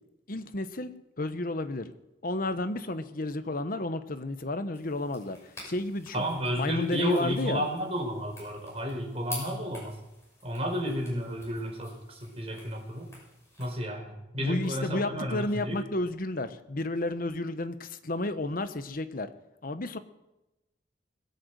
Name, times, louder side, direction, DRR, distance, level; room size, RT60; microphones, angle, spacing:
voice 1, 0.3-1.9 2.2-6.2 6.5-7.6 14.4-19.3 19.6-20.0, left 2 dB, 50° left, 11 dB, 1.0 m, -32 dB
sound 1, 4.7-13.7, left 1 dB, 15° left, 6.2 m, -48 dB
voice 2, 6.1-10.0 10.4-13.1 13.6-15.8, equal, 35° right, 1 dB, 4.4 m, -32 dB
21.0 x 8.1 x 7.9 m, 0.98 s
head